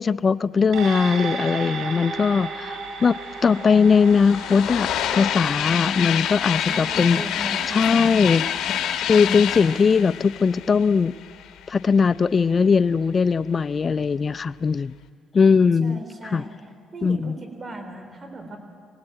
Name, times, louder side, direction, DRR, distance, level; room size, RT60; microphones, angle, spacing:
voice 1, 0.0-7.2 7.7-8.4 9.1-11.1 11.7-14.9 15.3-16.0 16.3-16.4 17.0-17.4, left 5 dB, 40° left, 17 dB, 0.5 m, -20 dB
sound 1, 0.7-9.4 9.8-9.9, right 4 dB, 85° right, 3.0 m, -35 dB
sound 2, 2.7-2.8 3.0-11.6, left 10 dB, 80° left, 1.3 m, -28 dB
voice 2, 6.7-8.6 15.8-16.5 16.9-18.6, right 1 dB, 35° right, 6 dB, 3.7 m, -37 dB
23.5 x 18.5 x 8.9 m, 2.2 s
cardioid pair, 90°, 0 cm